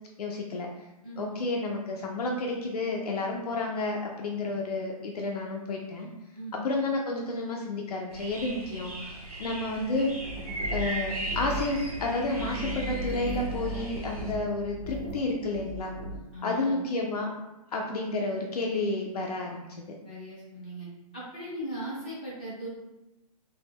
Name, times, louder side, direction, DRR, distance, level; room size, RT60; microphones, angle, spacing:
voice 1, 0.2-0.7 1.2-6.1 6.6-10.1 10.7-15.9 16.4-17.3 17.7-19.7, left 2 dB, 85° left, 0 dB, 0.5 m, -31 dB
voice 2, 1.0-1.4 6.3-6.6 16.3-16.8 20.0-20.9 21.1-22.7, equal, 15° left, -8 dB, 0.4 m, -38 dB
early morning, 8.1-14.3, right 1 dB, 90° right, 0.9 m, -38 dB
sound 1, 10.2-16.2, right 1 dB, 50° right, 0.4 m, -36 dB
2.1 x 2.1 x 3.3 m, 0.97 s
hypercardioid pair, 175°, 19 cm